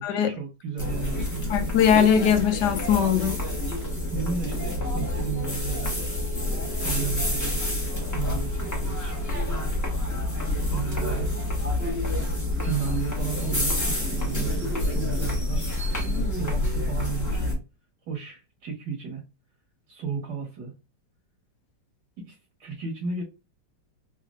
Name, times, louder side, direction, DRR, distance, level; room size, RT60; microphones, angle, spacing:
voice 1, 0.0-1.7 4.1-6.2 6.5-7.6 8.1-9.2 10.7-11.3 12.6-15.7 16.0-17.6 18.1-19.2 19.9-20.7 22.2-23.2, right 6 dB, 70° right, 1.9 m, -34 dB
sound 1, 0.8-17.5, left 1 dB, 10° left, 1.2 m, -28 dB
voice 2, 1.5-3.4, left 8 dB, 75° left, 1.3 m, -21 dB
4.2 x 2.8 x 2.4 m
omnidirectional pair, 1.9 m